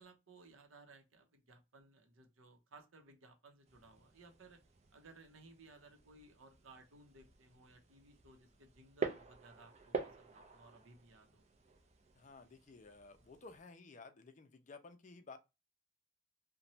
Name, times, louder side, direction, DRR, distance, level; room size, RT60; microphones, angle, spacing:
voice 1, 0.0-4.6 4.9-11.4, right 3 dB, 80° right, 0.7 m, -61 dB
sound 1, 3.7-13.6, right 4 dB, 35° right, 0.4 m, -48 dB
voice 2, 12.2-15.4, left 3 dB, 35° left, 0.4 m, -55 dB
3.0 x 2.1 x 2.7 m
head